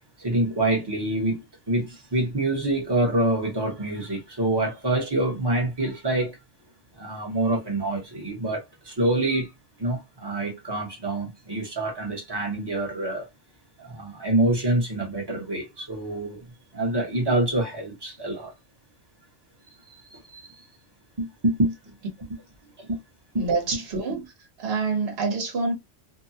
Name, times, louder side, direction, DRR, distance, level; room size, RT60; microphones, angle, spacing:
voice 1, 0.2-1.4 1.7-6.4 7.0-9.5 9.8-13.3 13.8-16.4 16.7-18.5 19.9-20.6 21.2-21.7 22.8-23.0 23.3-23.4, right 2 dB, 20° right, 0.9 m, -26 dB
voice 2, 23.4-24.3 24.6-25.7, right 4 dB, 55° right, 1.1 m, -26 dB
2.7 x 2.2 x 2.7 m
omnidirectional pair, 1.2 m